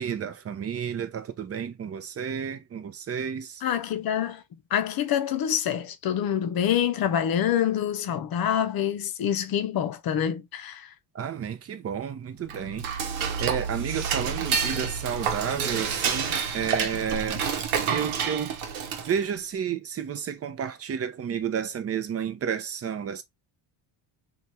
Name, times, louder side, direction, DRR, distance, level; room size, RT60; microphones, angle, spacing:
voice 1, 0.0-3.6 11.1-12.9 13.4-17.5 17.9-18.6 19.0-23.2, right 8 dB, 30° right, 0.6 m, -31 dB
voice 2, 3.6-4.4 4.7-10.9, left 9 dB, 50° left, 0.6 m, -26 dB
Dishes pots and pans / Cutlery silverware, 12.4-19.3, right 6 dB, 80° right, 0.9 m, -29 dB
3.1 x 2.4 x 2.6 m
cardioid pair, 90°, 48 cm